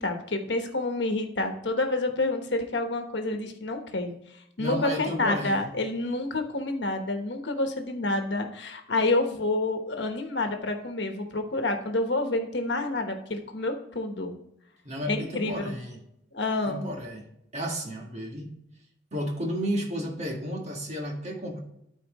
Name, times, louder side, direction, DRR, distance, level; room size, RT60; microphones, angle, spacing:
voice 1, 0.0-4.1 4.6-14.3 15.0-15.6 16.3-16.9, left 2 dB, 70° left, 5 dB, 1.2 m, -28 dB
voice 2, 4.6-5.6 14.8-16.0 16.6-17.2 17.5-18.5 19.1-21.6, equal, 40° right, 1 dB, 1.7 m, -32 dB
13.0 x 4.5 x 3.0 m, 0.79 s
head